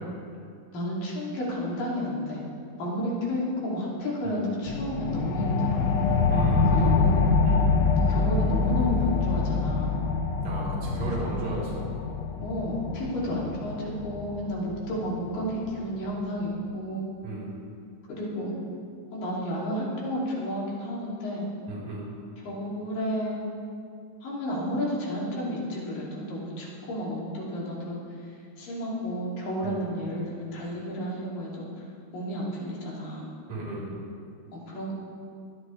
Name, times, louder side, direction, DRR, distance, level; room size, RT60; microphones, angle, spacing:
voice 1, 0.7-2.4 2.8-5.8 6.6-7.3 8.1-9.9 11.0-11.4 12.4-17.1 18.1-18.5 19.1-21.5 22.5-23.4 24.2-28.0 28.6-31.7 32.1-33.2 34.5-34.9, equal, 85° left, -5 dB, 4.2 m, -31 dB
sound 1, 4.7-15.7, left 4 dB, 70° left, 2.3 m, -26 dB
voice 2, 6.3-7.0 7.4-7.7 10.4-11.8 17.2-17.5 21.7-22.1 29.6-29.8 33.5-33.9, right 2 dB, 85° right, -5 dB, 4.9 m, -34 dB
23.0 x 9.8 x 3.2 m, 2.4 s
omnidirectional pair, 3.8 m